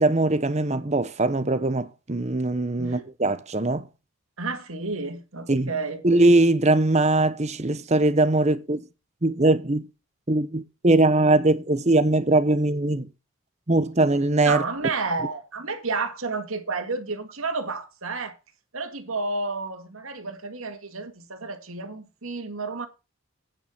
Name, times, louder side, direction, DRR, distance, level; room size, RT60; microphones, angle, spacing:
voice 1, 0.0-3.8 5.5-5.7 6.0-8.8 9.2-9.9 10.3-13.1 13.7-14.6, right 2 dB, 30° right, 0.9 m, -21 dB
voice 2, 4.4-6.0 14.4-18.4 18.7-22.9, right 3 dB, 70° right, 2.2 m, -31 dB
9.2 x 8.8 x 4.4 m
head